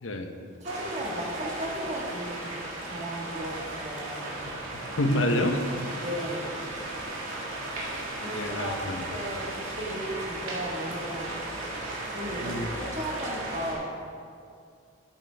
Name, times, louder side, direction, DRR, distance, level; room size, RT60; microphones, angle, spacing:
voice 1, 0.0-0.3 4.4-5.6 8.3-9.1 12.4-12.7, left 1 dB, 70° left, 6 dB, 0.8 m, -28 dB
voice 2, 0.6-2.6 2.9-4.3 6.0-6.7 7.9-8.7 9.1-11.4 12.1-13.9, right 1 dB, 35° right, -2 dB, 1.5 m, -35 dB
sound 1, 0.6-13.7, right 2 dB, 75° right, 2.0 m, -36 dB
12.0 x 7.8 x 3.4 m, 2.3 s
head